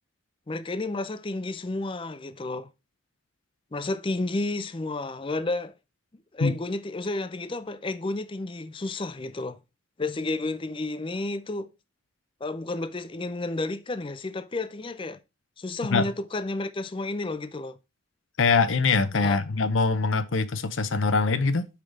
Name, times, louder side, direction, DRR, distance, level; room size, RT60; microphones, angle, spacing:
voice 1, 0.5-2.7 3.7-5.7 6.3-9.6 10.0-11.7 12.4-15.2 15.6-17.8 19.2-19.4, left 2 dB, 25° left, 0.4 m, -31 dB
voice 2, 18.4-21.7, left 4 dB, 80° left, 0.7 m, -23 dB
5.8 x 4.8 x 5.0 m
head